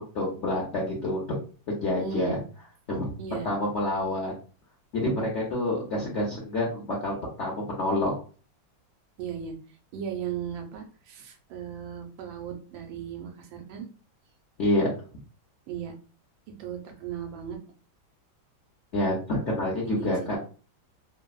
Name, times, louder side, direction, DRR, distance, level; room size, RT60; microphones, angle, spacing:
voice 1, 0.1-1.2 1.7-2.4 2.9-4.4 4.9-8.2 14.6-14.9 18.9-20.4, left 1 dB, 70° left, -4 dB, 0.6 m, -28 dB
voice 2, 2.0-2.4 3.2-3.5 9.2-9.5 9.9-13.9 15.7-15.9 16.6-17.6 19.8-20.4, right 8 dB, 90° right, 4 dB, 1.4 m, -36 dB
3.3 x 2.0 x 2.3 m, 0.38 s
omnidirectional pair, 2.1 m